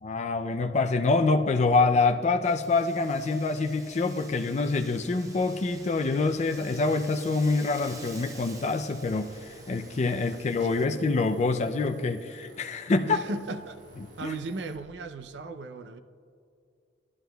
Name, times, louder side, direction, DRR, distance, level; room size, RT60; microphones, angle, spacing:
voice 1, 0.0-13.2 14.2-14.3, left 3 dB, 40° left, 0.4 m, -26 dB
Wind, 2.4-10.8, right 2 dB, 20° right, 0.8 m, -49 dB
sound 1, 9.0-14.8, right 1 dB, 90° right, 2.3 m, -54 dB
voice 2, 10.1-11.0 13.0-13.8 14.2-16.0, right 3 dB, 70° right, 0.5 m, -37 dB
17.0 x 11.0 x 2.3 m
head